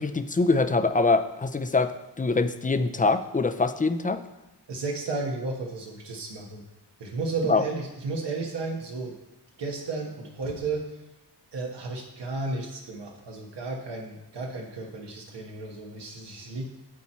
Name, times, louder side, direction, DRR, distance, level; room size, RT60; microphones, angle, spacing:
voice 1, 0.0-1.9 2.2-4.2 7.5-7.6, left 3 dB, 20° left, 10 dB, 0.4 m, -24 dB
voice 2, 4.7-6.6 7.0-9.1 9.6-11.0 11.5-16.7, right 3 dB, 85° right, 0 dB, 1.2 m, -33 dB
12.0 x 4.4 x 4.3 m, 0.99 s
wide cardioid pair, 110°, 41 cm